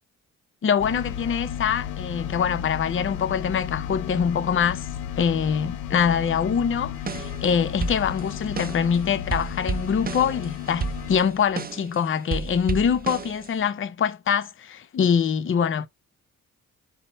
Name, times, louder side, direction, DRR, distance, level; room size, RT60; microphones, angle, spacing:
voice 1, 0.6-4.9 5.2-15.9, left 7 dB, 35° left, 0.5 m, -24 dB
sound 1, 0.8-11.2, left 9 dB, 80° left, 0.6 m, -34 dB
sound 2, 6.9-7.5 7.8-8.9 9.3-11.9 12.3-13.7, right 5 dB, 25° right, 0.6 m, -32 dB
5.4 x 2.0 x 4.3 m
supercardioid pair, 55°, 35 cm